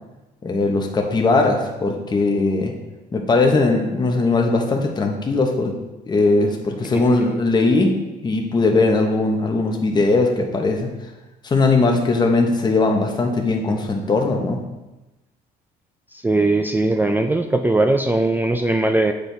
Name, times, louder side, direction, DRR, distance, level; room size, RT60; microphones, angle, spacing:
voice 1, 0.4-2.7 3.1-5.7 6.1-7.9 8.2-10.9 11.4-14.6, left 3 dB, 25° left, 2 dB, 1.0 m, -19 dB
voice 2, 16.2-19.1, right 2 dB, 10° right, 5 dB, 0.3 m, -19 dB
7.9 x 4.5 x 3.4 m, 1.0 s
cardioid pair, 110°, 17 cm